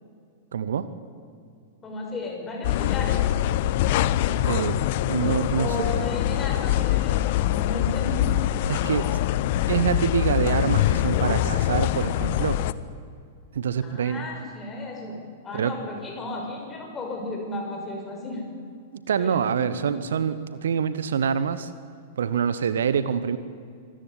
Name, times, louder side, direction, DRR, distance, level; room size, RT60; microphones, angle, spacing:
voice 1, 0.5-0.9 4.4-5.9 8.7-9.2 9.7-12.6 13.5-14.3 15.5-15.7 18.9-21.7 22.2-23.4, right 7 dB, 65° right, 14 dB, 1.0 m, -26 dB
voice 2, 1.8-3.2 5.5-8.3 13.8-18.6 19.2-19.7, left 2 dB, 20° left, 1 dB, 6.1 m, -34 dB
sound 1, 2.6-12.7, left 13 dB, 50° left, 0.7 m, -24 dB
25.0 x 14.0 x 9.8 m, 2.3 s
figure-of-eight pair, 100°, 0 cm